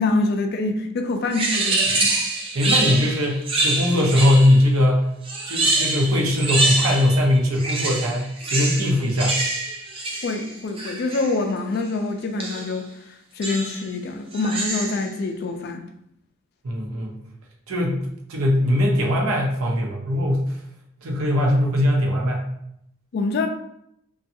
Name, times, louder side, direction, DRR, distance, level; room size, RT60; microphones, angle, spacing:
voice 1, 0.0-2.1 10.2-12.9 13.4-15.8 23.1-23.5, left 3 dB, 50° left, 0.3 m, -25 dB
sound 1, 1.3-4.7 5.2-7.2 7.5-11.4 12.4-12.8 13.4-13.9 14.3-15.1, right 2 dB, 25° right, 0.4 m, -25 dB
voice 2, 2.5-5.1 5.5-9.4 16.6-17.2 17.7-20.5 21.0-22.5, left 1 dB, 80° right, 0.6 m, -20 dB
2.6 x 2.3 x 2.6 m
head